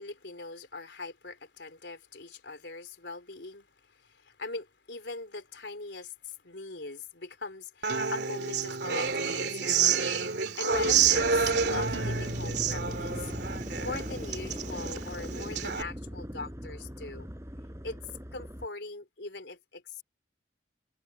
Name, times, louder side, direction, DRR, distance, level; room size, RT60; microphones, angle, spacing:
voice 1, 0.0-10.0 10.6-13.3 13.8-17.3 17.8-18.0 18.3-20.0, left 3 dB, 75° left, 3.2 m, -41 dB
Human voice / Acoustic guitar, 7.8-15.8, right 6 dB, 70° right, 2.7 m, -29 dB
sound 1, 10.7-18.7, equal, 15° right, 5.3 m, -40 dB
sound 2, 10.7-15.7, right 1 dB, 50° right, 5.5 m, -45 dB
head